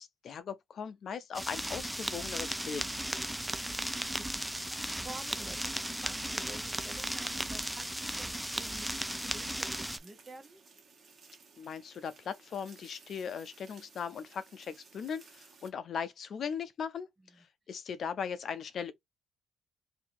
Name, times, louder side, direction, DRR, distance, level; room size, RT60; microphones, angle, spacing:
voice 1, 0.0-2.8 11.6-17.1 17.4-18.9, left 7 dB, 60° left, 0.5 m, -39 dB
sound 1, 1.3-10.0, right 1 dB, 5° right, 0.4 m, -36 dB
voice 2, 3.5-8.3 8.5-10.6 17.3-17.4, right 3 dB, 25° right, 0.8 m, -51 dB
sound 2, 7.0-15.7, right 4 dB, 45° right, 1.2 m, -57 dB
2.8 x 2.6 x 3.7 m
cardioid pair, 90°, 0 cm